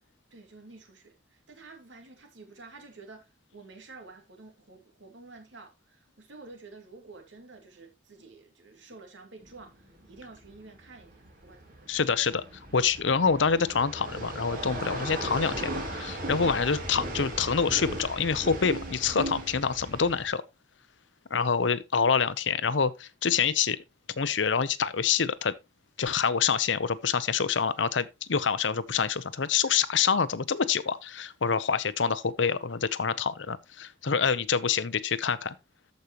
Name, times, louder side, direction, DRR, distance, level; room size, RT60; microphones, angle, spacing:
voice 1, 0.3-12.0 29.6-29.7, right 3 dB, 85° right, 2.4 m, -50 dB
sound 1, 9.4-20.3, right 1 dB, 45° right, 2.5 m, -37 dB
voice 2, 11.9-12.4 12.7-20.4 21.3-23.8 24.2-25.6 26.0-35.5, left 6 dB, 85° left, 0.7 m, -26 dB
13.5 x 5.4 x 3.0 m
head